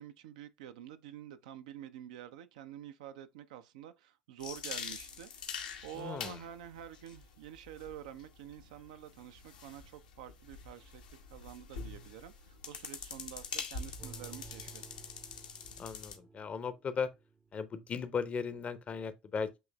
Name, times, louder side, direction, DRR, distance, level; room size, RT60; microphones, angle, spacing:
voice 1, 0.0-11.0 11.3-14.8, right 11 dB, 65° right, 0.5 m, -48 dB
sound 1, 4.4-16.2, left 6 dB, 75° left, 0.9 m, -45 dB
voice 2, 6.0-6.4 15.8-17.1 17.5-19.6, left 6 dB, 30° left, 0.6 m, -37 dB
sound 2, 14.0-18.0 18.5-18.6, right 6 dB, 20° right, 0.6 m, -55 dB
7.6 x 3.1 x 2.2 m
figure-of-eight pair, 65°, 4 cm